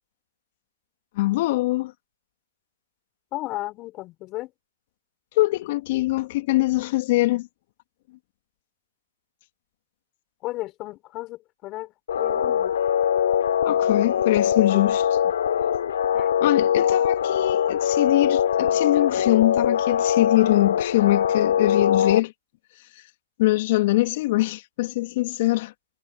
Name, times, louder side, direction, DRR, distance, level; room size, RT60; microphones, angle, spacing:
voice 1, 1.2-1.9 5.4-7.5 13.6-15.0 16.4-22.3 23.4-25.7, left 18 dB, 50° left, 2.6 m, -23 dB
voice 2, 3.3-4.5 10.4-12.7 14.5-14.9 16.1-16.5, left 18 dB, 30° left, 5.1 m, -34 dB
sound 1, 12.1-22.2, left 9 dB, 70° left, 3.8 m, -22 dB
hypercardioid pair, 130°, 0 cm